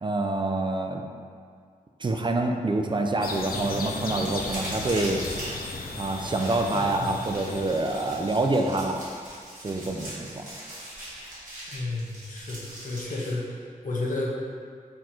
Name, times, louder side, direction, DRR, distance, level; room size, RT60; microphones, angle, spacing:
voice 1, 0.0-1.0 2.0-5.2 6.0-9.0 9.6-10.5, right 2 dB, 35° right, 3 dB, 0.3 m, -26 dB
sound 1, 3.2-8.5, left 3 dB, 90° left, 0.5 m, -36 dB
sound 2, 4.2-13.3, right 1 dB, 60° right, 1.5 m, -41 dB
voice 2, 6.7-7.1 11.6-14.4, left 2 dB, 65° left, -3 dB, 0.8 m, -32 dB
4.4 x 2.4 x 4.3 m, 2.1 s
wide cardioid pair, 75°, 15 cm